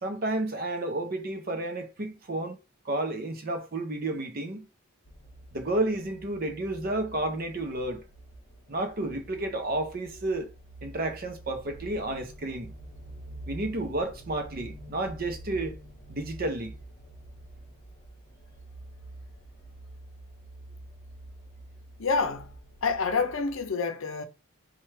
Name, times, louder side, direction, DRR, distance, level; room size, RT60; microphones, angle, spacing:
voice 1, 0.0-2.6 2.8-4.7 5.5-8.0 8.7-10.5 10.8-12.7 13.5-15.8 16.1-16.7, right 2 dB, 40° right, 0.6 m, -31 dB
sound 1, 5.0-23.7, right 1 dB, 25° left, 0.8 m, -47 dB
voice 2, 22.0-22.5 22.8-24.2, left 4 dB, 65° left, 0.6 m, -27 dB
4.3 x 2.3 x 3.2 m
head